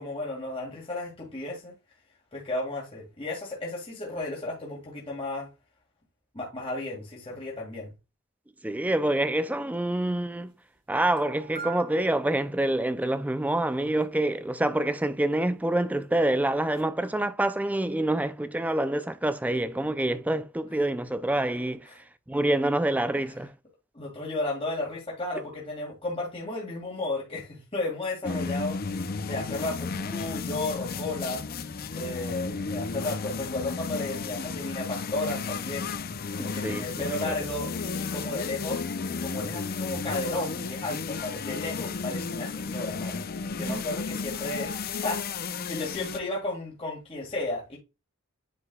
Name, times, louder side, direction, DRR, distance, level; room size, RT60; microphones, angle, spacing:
voice 1, 0.0-1.7 2.3-5.5 6.3-7.9 23.9-28.8 29.2-31.4 31.9-35.9 36.4-37.7 38.0-38.8 39.2-43.2 43.6-47.8, left 2 dB, 25° left, 2.0 m, -33 dB
voice 2, 8.6-10.5 10.9-21.9 22.3-23.5 36.4-36.9 37.2-37.3 43.7-43.8, right 1 dB, 5° right, 0.4 m, -27 dB
sound 1, 10.4-10.5 10.7-10.8 11.2-13.0 16.0-16.1 16.5-16.8, right 6 dB, 25° right, 1.7 m, -43 dB
sound 2, 28.2-46.2, left 4 dB, 45° left, 0.5 m, -33 dB
9.7 x 4.8 x 2.3 m
head